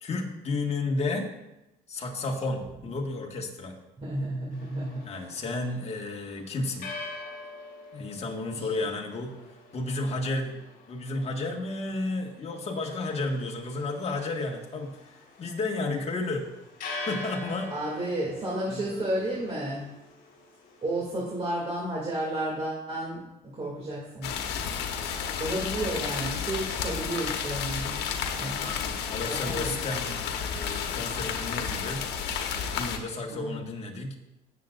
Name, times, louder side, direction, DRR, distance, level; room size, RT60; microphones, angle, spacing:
voice 1, 0.0-1.3 1.9-3.8 5.0-6.9 7.9-9.3 9.7-10.6 10.9-16.5 17.0-17.7 18.7-19.3 28.5-32.0 32.7-34.1, left 2 dB, 40° left, 1 dB, 1.8 m, -32 dB
voice 2, 4.0-5.1 8.5-8.6 17.7-19.9 20.8-23.2 23.5-24.3 25.4-28.8 29.2-29.7 33.3-33.6, right 1 dB, 35° right, -6 dB, 2.7 m, -32 dB
sound 1, 4.5-21.0, left 3 dB, 60° left, 3.5 m, -45 dB
sound 2, 24.2-33.0, left 7 dB, 80° left, 1.2 m, -32 dB
17.0 x 7.6 x 2.6 m, 0.93 s
cardioid pair, 110°, 17 cm